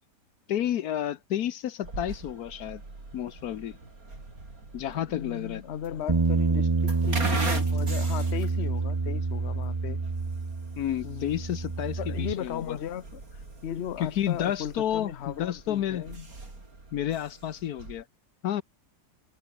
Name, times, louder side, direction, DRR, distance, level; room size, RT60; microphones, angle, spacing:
voice 1, 0.5-2.8 3.1-3.8 4.7-5.6 10.8-12.8 14.0-16.0 16.9-18.0 18.4-18.6, left 11 dB, 70° left, 1.3 m, -30 dB
sound 1, 1.8-18.0, right 3 dB, 60° right, 5.1 m, -41 dB
voice 2, 5.1-10.0 11.0-11.4 12.0-13.2 13.6-16.3, left 9 dB, 50° left, 1.0 m, -36 dB
Bass guitar, 6.1-12.3, right 4 dB, 25° right, 0.7 m, -27 dB
omnidirectional pair, 1.7 m